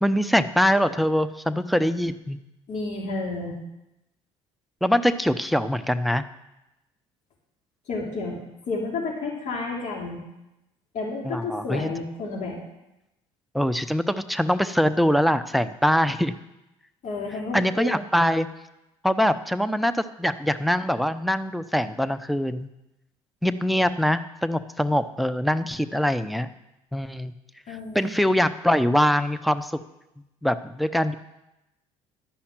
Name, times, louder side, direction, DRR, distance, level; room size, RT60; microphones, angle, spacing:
voice 1, 0.0-2.4 4.8-6.2 11.3-11.9 13.5-16.3 17.5-18.5 19.0-22.7 23.4-26.5 26.9-27.3 27.9-29.7 30.4-31.1, equal, ahead, 12 dB, 0.7 m, -23 dB
voice 2, 2.7-3.5 7.9-8.4 8.7-10.2 10.9-12.6 17.0-17.6 27.7-28.1, left 3 dB, 55° left, -3 dB, 3.2 m, -31 dB
11.5 x 5.7 x 8.9 m, 0.93 s
hypercardioid pair, 65°, 15 cm